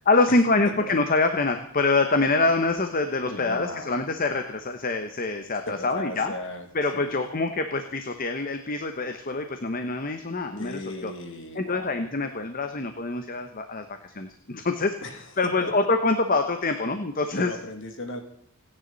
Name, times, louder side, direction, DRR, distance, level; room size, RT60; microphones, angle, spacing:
voice 1, 0.1-6.3 6.7-11.1 11.5-15.0 15.4-17.5, left 3 dB, 40° left, 7 dB, 1.1 m, -25 dB
voice 2, 3.2-4.0 5.7-7.3 10.6-12.0 15.0-15.3 15.6-15.7 17.4-18.2, left 1 dB, 60° left, 5 dB, 2.6 m, -36 dB
27.5 x 10.0 x 4.1 m, 0.70 s
head